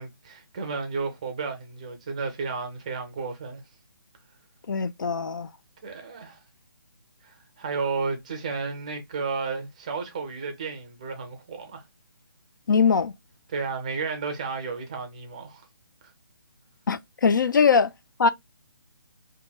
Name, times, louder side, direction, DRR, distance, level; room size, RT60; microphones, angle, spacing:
voice 1, 0.0-3.6 5.8-6.4 7.2-11.8 13.5-15.6, right 4 dB, 15° right, 0.5 m, -32 dB
voice 2, 4.7-5.5 12.7-13.1 16.9-17.9 18.2-18.3, left 5 dB, 55° left, 0.4 m, -21 dB
4.0 x 2.6 x 2.2 m
hypercardioid pair, 170°, 13 cm